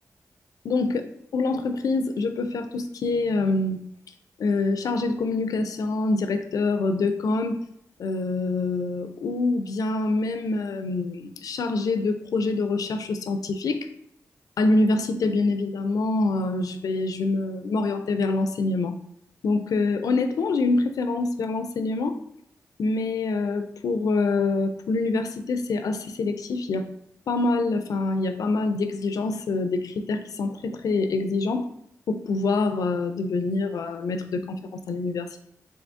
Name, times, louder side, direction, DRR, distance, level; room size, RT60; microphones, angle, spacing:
voice 1, 0.6-1.0 1.3-3.8 4.4-7.6 8.0-13.9 14.6-19.0 19.4-22.2 22.8-26.9 27.3-31.7 32.1-35.4, left 3 dB, 80° left, 8 dB, 0.3 m, -25 dB
3.7 x 3.5 x 2.5 m, 0.73 s
cardioid pair, 50°, 6 cm